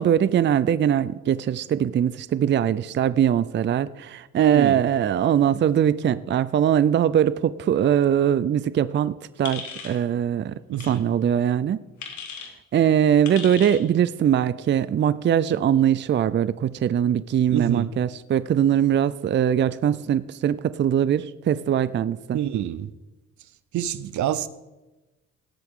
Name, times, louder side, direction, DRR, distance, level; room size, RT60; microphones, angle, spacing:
voice 1, 0.0-10.5 10.8-11.8 12.7-22.4, right 9 dB, 40° right, 0.4 m, -21 dB
voice 2, 4.4-4.8 10.7-11.1 17.5-17.9 22.3-22.9 23.7-24.5, right 11 dB, 70° right, 0.7 m, -26 dB
sound 1, 9.4-10.0 10.8-11.0 12.0-12.5 13.2-13.8, left 6 dB, 70° left, 2.2 m, -36 dB
18.0 x 8.1 x 3.7 m
cardioid pair, 90°, 30 cm